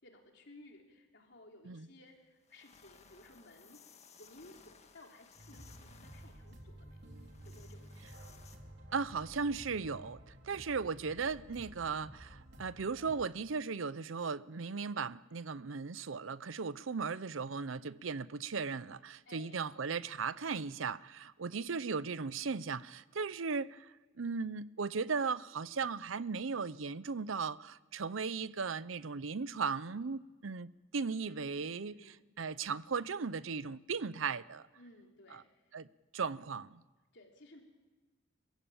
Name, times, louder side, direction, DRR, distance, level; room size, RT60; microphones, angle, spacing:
voice 1, 0.0-3.8 4.2-7.1 7.4-8.2 19.3-19.8 31.3-32.3 34.7-35.7 37.1-37.6, left 1 dB, 60° left, 3.8 m, -58 dB
sound 1, 2.1-2.2 2.4-8.6, left 6 dB, 35° left, 1.8 m, -61 dB
sound 2, 5.3-13.3, right 1 dB, 60° right, 4.0 m, -53 dB
voice 2, 8.9-10.2 10.4-34.7 35.3-35.4 35.7-35.9 36.1-36.8, right 5 dB, 90° right, 0.7 m, -37 dB
27.0 x 15.5 x 8.8 m
head